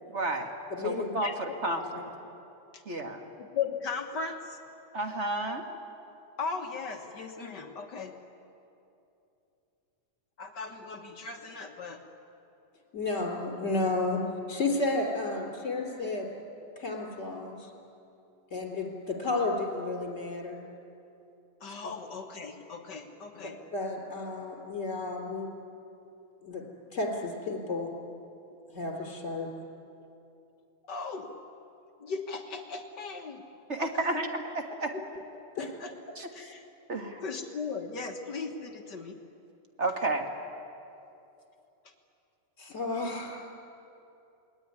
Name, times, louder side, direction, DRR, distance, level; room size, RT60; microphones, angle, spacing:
voice 1, 0.1-0.5 0.8-2.0 2.8-3.2 4.9-5.6 33.7-34.9 36.1-36.3 36.9-37.2 39.8-40.3, right 2 dB, 35° right, 4 dB, 1.2 m, -31 dB
voice 2, 0.7-1.1 1.8-2.0 12.9-14.2 14.5-16.3 16.8-17.7 18.5-20.6 23.7-25.5 26.4-26.6 26.9-27.9 28.7-29.5 35.6-35.7 42.6-43.4, left 3 dB, 20° left, 1 dB, 3.9 m, -32 dB
voice 3, 3.4-4.6 6.4-8.1 10.4-12.0 21.6-23.6 30.8-31.3 32.0-33.4 33.8-34.2 34.9-35.2 35.6-36.6 37.2-39.2, left 5 dB, 55° left, 4 dB, 1.2 m, -37 dB
28.0 x 21.0 x 9.6 m, 2.8 s
omnidirectional pair, 3.7 m